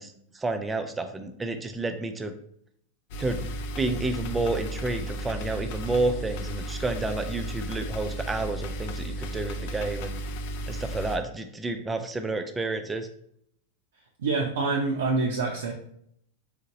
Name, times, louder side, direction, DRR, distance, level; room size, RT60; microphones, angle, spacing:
voice 1, 0.0-2.3 3.2-3.4 3.8-10.2 10.7-13.1, right 2 dB, 10° right, 7 dB, 0.5 m, -30 dB
sound 1, 3.1-11.2, right 1 dB, 50° left, 0.4 m, -34 dB
voice 2, 14.2-15.7, right 3 dB, 60° right, -1 dB, 0.5 m, -26 dB
3.8 x 3.6 x 2.8 m, 0.69 s
figure-of-eight pair, 90°, 0 cm